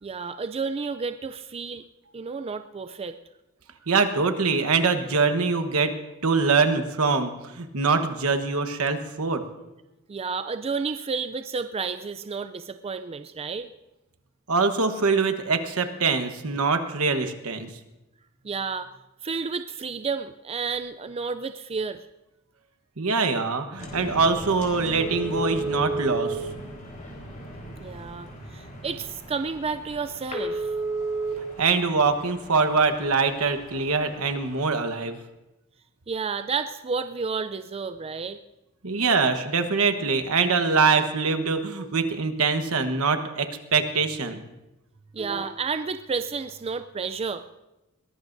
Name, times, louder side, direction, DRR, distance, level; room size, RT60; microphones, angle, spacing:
voice 1, 0.0-1.8 2.1-3.2 10.1-13.7 18.4-18.9 19.2-22.1 27.8-30.7 36.1-38.4 45.1-47.4, right 5 dB, 25° right, 10 dB, 0.4 m, -31 dB
voice 2, 3.9-5.9 6.2-9.4 14.5-17.7 23.0-26.4 31.6-35.2 38.8-44.4, right 4 dB, 75° right, 7 dB, 1.2 m, -23 dB
sound 1, 23.8-34.6, right 2 dB, 35° left, 4.2 m, -34 dB
22.0 x 18.0 x 2.7 m, 0.96 s
head